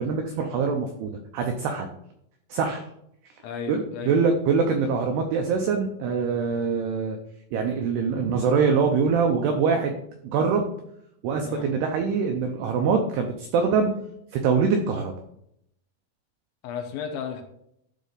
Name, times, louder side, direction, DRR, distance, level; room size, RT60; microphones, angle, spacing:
voice 1, 0.0-1.9 2.5-2.8 3.7-7.2 7.5-10.0 10.3-10.7 11.2-13.9 14.3-15.1, right 5 dB, 85° right, 4 dB, 2.3 m, -24 dB
voice 2, 3.4-4.2 11.4-11.7 16.6-17.4, left 6 dB, 75° left, 5 dB, 3.0 m, -33 dB
12.5 x 4.2 x 3.9 m, 0.74 s
omnidirectional pair, 5.7 m